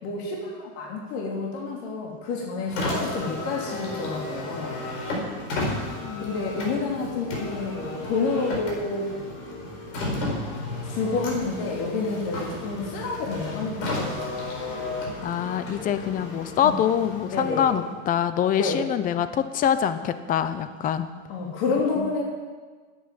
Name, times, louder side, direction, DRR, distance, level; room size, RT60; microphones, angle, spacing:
voice 1, 0.0-4.8 6.2-9.1 10.8-14.1 16.6-16.7 17.3-17.6 18.6-18.8 21.3-22.2, left 4 dB, 60° left, -2 dB, 3.2 m, -29 dB
Car, 2.6-18.1, left 2 dB, 75° left, 4.8 m, -33 dB
voice 2, 5.6-6.3 15.2-21.1 22.0-22.1, left 9 dB, 25° left, 12 dB, 0.6 m, -25 dB
9.9 x 8.8 x 9.3 m, 1.4 s
supercardioid pair, 145°, 36 cm